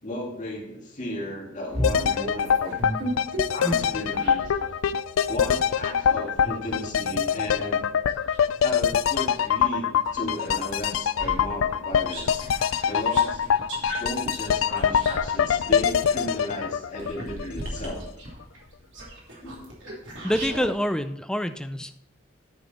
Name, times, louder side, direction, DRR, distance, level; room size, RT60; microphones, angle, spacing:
voice 1, 0.0-2.8 3.5-4.5 5.3-7.8 8.6-12.5 12.9-13.4 14.0-18.0 19.4-19.7, left 1 dB, 40° left, -2 dB, 2.4 m, -34 dB
sound 1, 1.7-4.7 5.2-9.6 10.0-20.7, equal, 60° right, 3.0 m, -36 dB
sound 2, 1.8-17.8 18.1-18.2, left 8 dB, 75° left, 0.4 m, -24 dB
voice 2, 20.2-21.9, equal, 5° left, 9 dB, 0.4 m, -26 dB
10.0 x 6.4 x 4.2 m, 0.78 s
head